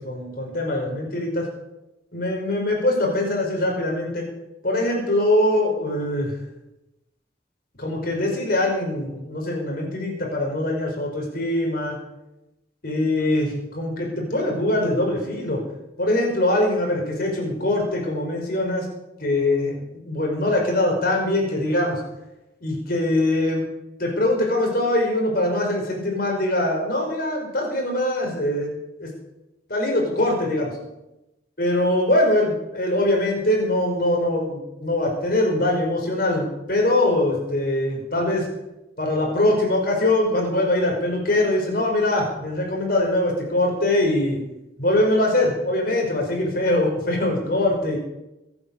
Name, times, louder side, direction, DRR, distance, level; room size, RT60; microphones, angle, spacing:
voice 1, 0.0-1.5 2.1-4.3 4.6-6.3 7.8-12.0 12.8-15.7 16.0-18.9 19.2-22.0 22.6-23.7 24.0-29.1 29.7-30.8 31.6-38.5 39.0-44.4 44.8-48.0, left 1 dB, 50° left, 0 dB, 5.4 m, -22 dB
22.0 x 9.1 x 6.8 m, 0.94 s
head